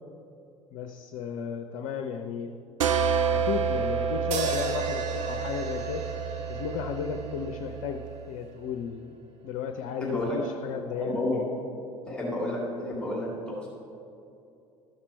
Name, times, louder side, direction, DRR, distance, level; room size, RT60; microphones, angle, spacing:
voice 1, 0.7-2.5 3.3-6.0 6.5-9.2 9.4-11.2, left 7 dB, 50° left, 6 dB, 0.6 m, -34 dB
sound 1, 2.8-8.3, right 6 dB, 75° right, 0.5 m, -29 dB
sound 2, 4.3-8.6, right 4 dB, 45° right, 1.0 m, -37 dB
voice 2, 10.0-10.4 11.0-11.5 12.1-13.7, left 1 dB, 5° left, -5 dB, 2.3 m, -30 dB
13.0 x 5.9 x 4.5 m, 2.7 s
figure-of-eight pair, 70°, 17 cm